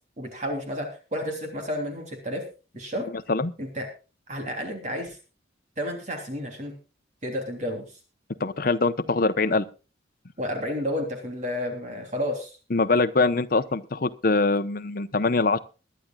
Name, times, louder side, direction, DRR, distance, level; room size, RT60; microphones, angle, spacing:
voice 1, 0.2-2.4 2.7-3.1 3.6-3.9 4.3-5.2 5.8-6.7 7.2-7.9 10.4-12.5, equal, 40° right, 4 dB, 3.2 m, -31 dB
voice 2, 8.4-9.7 12.7-15.6, left 3 dB, 50° left, 10 dB, 0.9 m, -23 dB
22.5 x 11.0 x 2.4 m, 0.33 s
head